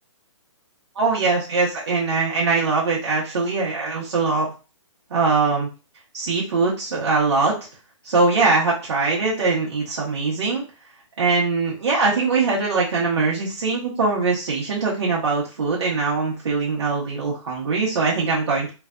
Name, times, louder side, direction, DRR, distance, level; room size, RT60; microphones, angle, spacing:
voice 1, 0.9-4.5 5.1-5.7 6.1-7.5 8.0-10.6 11.2-18.7, right 4 dB, 60° right, -5 dB, 1.1 m, -22 dB
3.2 x 2.5 x 2.2 m, 0.32 s
hypercardioid pair, 175°, 16 cm